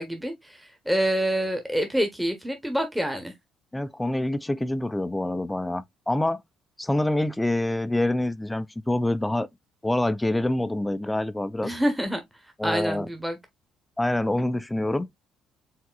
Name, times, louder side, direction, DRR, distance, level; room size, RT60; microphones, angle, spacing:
voice 1, 0.0-3.3 11.6-12.2 12.6-13.4, equal, 5° right, 1.0 m, -27 dB
voice 2, 3.7-6.4 6.8-9.5 9.8-11.7 12.6-13.1 14.0-15.1, left 1 dB, 10° left, 0.4 m, -26 dB
4.6 x 3.6 x 2.3 m
hypercardioid pair, 50°, 0 cm